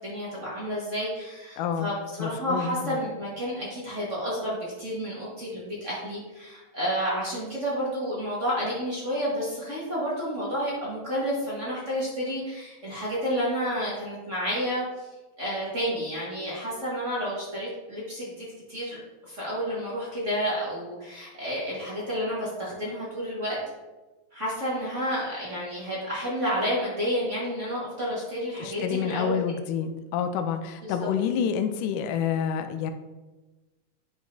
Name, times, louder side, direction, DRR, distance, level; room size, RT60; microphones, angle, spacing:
voice 1, 0.0-15.1 15.4-23.6 24.3-29.4 30.8-30.9, equal, 35° right, -7 dB, 1.2 m, -30 dB
voice 2, 1.6-1.9 2.2-3.0 28.6-32.9, left 8 dB, 80° left, 7 dB, 2.0 m, -28 dB
9.9 x 5.0 x 2.7 m, 1.2 s
omnidirectional pair, 3.9 m